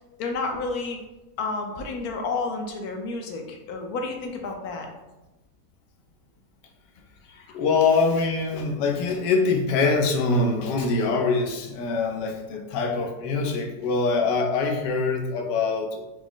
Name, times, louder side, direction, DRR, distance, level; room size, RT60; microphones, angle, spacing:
voice 1, 0.2-1.0 1.4-4.9 7.2-7.6, left 3 dB, 70° left, 3 dB, 1.1 m, -31 dB
voice 2, 7.5-16.0, left 4 dB, 90° left, 2 dB, 1.2 m, -24 dB
4.8 x 2.0 x 3.7 m, 1.0 s
omnidirectional pair, 1.8 m